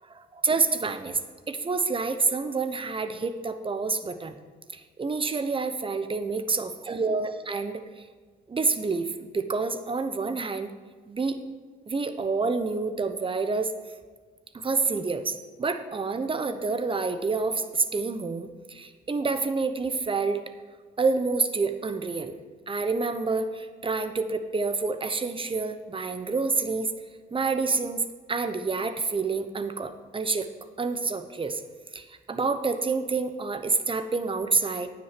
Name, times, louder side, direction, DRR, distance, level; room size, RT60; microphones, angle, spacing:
voice 1, 0.1-1.2 1.5-4.3 4.7-7.8 8.5-10.7 11.1-11.4 11.9-13.7 14.5-20.4 21.0-22.3 22.7-26.9 27.3-28.0 28.3-30.5 30.8-31.6 31.9-34.9, right 4 dB, 25° right, 9 dB, 0.9 m, -28 dB
9.6 x 6.1 x 7.5 m, 1.5 s
cardioid pair, 90°, 20 cm